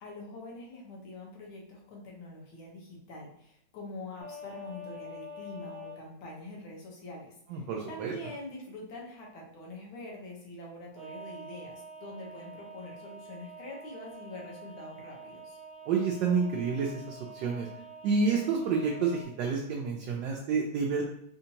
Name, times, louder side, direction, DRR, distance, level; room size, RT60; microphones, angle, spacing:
voice 1, 0.0-15.6, left 2 dB, 80° left, -3 dB, 1.8 m, -45 dB
sound 1, 4.2-6.0 10.9-19.2, right 1 dB, 90° right, 0.5 m, -46 dB
voice 2, 7.5-8.1 15.9-17.7 18.0-21.0, right 5 dB, 75° right, -1 dB, 1.1 m, -29 dB
4.2 x 2.7 x 2.8 m, 0.70 s
omnidirectional pair, 2.2 m